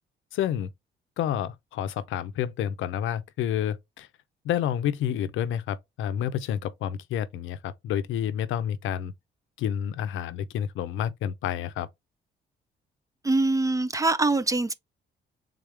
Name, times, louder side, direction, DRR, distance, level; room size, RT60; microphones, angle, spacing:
voice 1, 0.3-0.7 1.2-4.1 4.4-9.1 9.6-11.9, left 10 dB, 80° left, 0.5 m, -29 dB
voice 2, 13.2-14.7, right 2 dB, 15° right, 0.4 m, -23 dB
3.6 x 3.4 x 3.3 m
cardioid pair, 90°, 20 cm